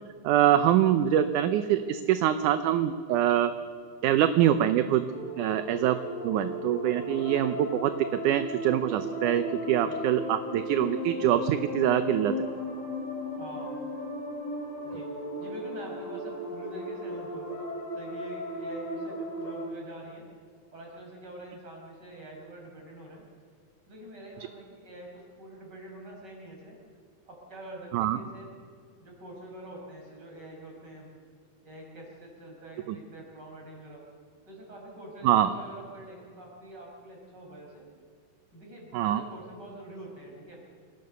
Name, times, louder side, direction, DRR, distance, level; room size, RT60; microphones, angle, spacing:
voice 1, 0.2-3.5 4.0-5.1 5.4-6.0 6.2-7.9 8.2-12.4 27.9-28.2 32.9-33.0 35.2-35.5 38.9-39.2, right 11 dB, 75° right, 10 dB, 2.2 m, -24 dB
sound 1, 5.1-19.7, equal, 30° left, 5.3 m, -36 dB
voice 2, 9.8-10.2 13.3-13.8 14.8-15.1 15.4-17.5 17.9-20.2 20.7-23.2 23.9-26.8 27.2-28.5 29.0-31.1 31.6-34.1 34.5-37.8 38.5-40.6, right 1 dB, 30° right, -1 dB, 6.3 m, -45 dB
27.5 x 18.0 x 6.8 m, 2.2 s
omnidirectional pair, 3.8 m